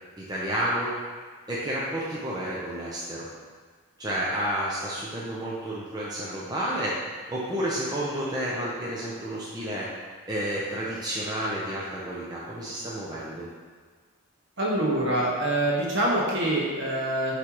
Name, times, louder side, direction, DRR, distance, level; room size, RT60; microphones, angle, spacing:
voice 1, 0.2-0.9 1.5-3.3 4.0-6.9 7.3-9.9 10.3-13.5, right 1 dB, 20° right, -6 dB, 0.6 m, -30 dB
voice 2, 14.6-17.4, right 1 dB, 55° right, -4 dB, 1.3 m, -25 dB
9.8 x 3.3 x 2.9 m, 1.5 s
head